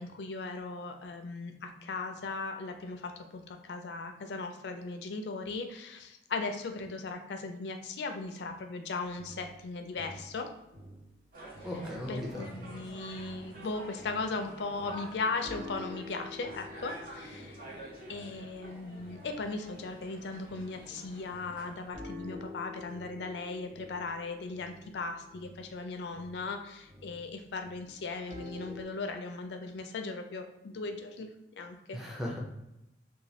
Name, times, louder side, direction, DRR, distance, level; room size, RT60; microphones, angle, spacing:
voice 1, 0.0-10.5 11.7-11.8 12.1-17.6 18.1-31.3 31.6-32.0, left 3 dB, 70° left, 5 dB, 0.4 m, -38 dB
sound 1, 9.1-12.0 12.3-20.9 21.3-28.8, left 2 dB, 30° right, 1.2 m, -49 dB
sound 2, 11.3-21.9, right 1 dB, 55° right, 0.7 m, -48 dB
voice 2, 11.6-12.5 31.9-32.4, left 1 dB, ahead, -2 dB, 0.4 m, -37 dB
3.1 x 2.2 x 2.7 m, 0.90 s
head